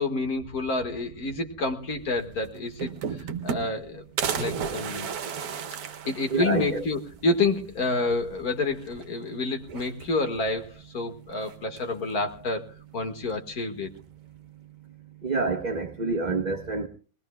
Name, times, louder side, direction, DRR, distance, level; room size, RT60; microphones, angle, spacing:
voice 1, 0.0-2.9 3.4-5.1 6.1-13.9, left 3 dB, 85° left, 4 dB, 2.3 m, -29 dB
sound 1, 2.2-2.3 2.5-3.9 4.2-6.8 7.2-7.3 7.5-7.6 8.8-9.3 9.6-10.4 11.4-12.0, right 7 dB, 85° right, 1.4 m, -33 dB
voice 2, 6.3-6.8 15.2-16.9, right 3 dB, 30° right, 5 dB, 1.1 m, -27 dB
21.5 x 20.0 x 2.3 m, 0.40 s
omnidirectional pair, 1.6 m